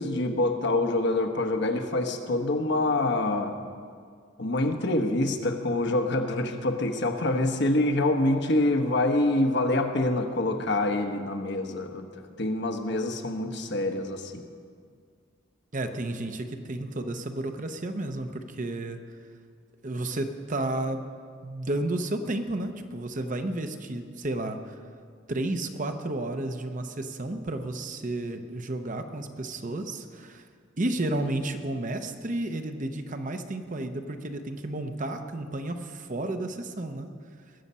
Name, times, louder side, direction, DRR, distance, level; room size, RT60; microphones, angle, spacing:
voice 1, 0.0-3.6 4.4-14.4, left 2 dB, 60° left, 5 dB, 1.0 m, -26 dB
voice 2, 15.7-19.0 19.8-21.0 21.4-24.8 25.3-30.4 30.8-37.1, right 2 dB, 40° right, 7 dB, 0.8 m, -32 dB
20.5 x 7.2 x 5.5 m, 2.1 s
head